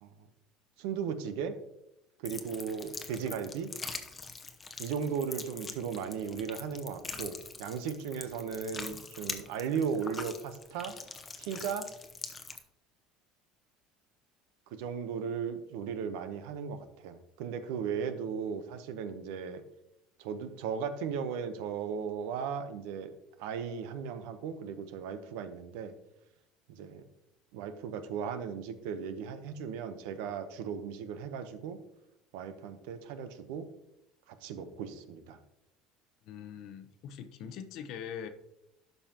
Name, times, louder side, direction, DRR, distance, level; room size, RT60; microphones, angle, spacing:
voice 1, 0.8-1.6 2.2-3.7 4.8-11.0 11.4-11.9 14.7-19.6 20.2-23.1 23.4-25.9 26.7-27.0 27.5-31.8 32.3-33.7 34.3-35.4, right 7 dB, 80° right, 10 dB, 0.8 m, -36 dB
sound 1, 2.2-12.6, left 4 dB, 20° left, 0.8 m, -43 dB
voice 2, 36.2-38.3, left 8 dB, 60° left, 9 dB, 0.8 m, -42 dB
12.0 x 5.6 x 2.9 m, 0.85 s
cardioid pair, 130°, 0 cm